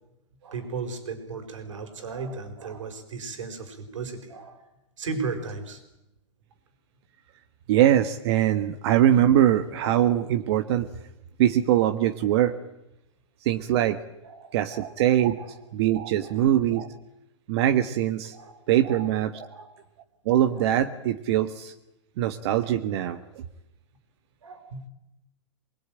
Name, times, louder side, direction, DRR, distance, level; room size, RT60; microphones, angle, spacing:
voice 1, 0.4-4.7 5.0-5.8 14.2-15.0 15.4-15.6 16.2-16.5 18.3-19.0 19.4-19.7 20.5-20.8 24.4-24.8, right 4 dB, 80° right, 8 dB, 4.8 m, -36 dB
voice 2, 7.7-10.9 11.4-12.5 13.4-14.0 14.5-15.5 15.7-16.9 17.5-18.3 18.7-19.5 20.2-21.7 22.2-23.2, right 11 dB, 60° right, 8 dB, 1.4 m, -22 dB
24.0 x 21.0 x 9.0 m, 0.88 s
hypercardioid pair, 120°, 16 cm